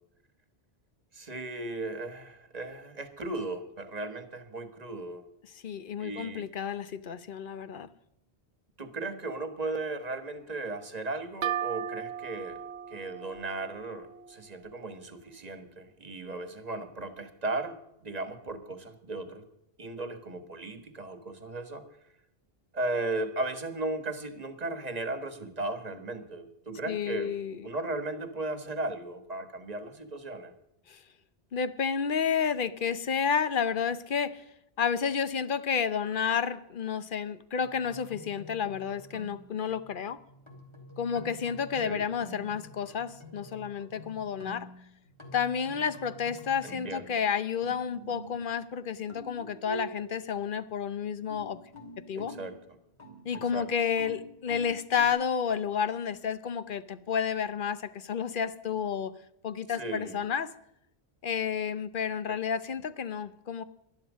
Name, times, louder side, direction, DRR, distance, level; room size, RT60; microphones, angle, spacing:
voice 1, 1.1-5.2 6.0-6.4 8.8-12.6 12.9-17.7 18.0-19.4 19.8-21.8 22.7-27.3 27.6-30.5 41.8-42.0 46.6-47.0 52.1-52.5 53.5-53.7 59.8-60.2, right 2 dB, 40° right, 9 dB, 1.5 m, -36 dB
voice 2, 5.6-7.9 26.9-27.7 30.9-31.0 31.5-34.4 34.8-40.2 41.0-44.7 45.3-51.6 52.1-52.3 53.2-59.1 59.4-60.5 61.2-63.6, left 7 dB, 55° left, 14 dB, 0.9 m, -31 dB
sound 1, 11.4-15.0, right 9 dB, 85° right, 1.0 m, -37 dB
sound 2, 37.6-47.2 47.6-48.7 49.1-50.3 51.2-55.1, equal, 25° left, 2.5 m, -47 dB
11.5 x 11.5 x 6.3 m, 0.80 s
omnidirectional pair, 1.1 m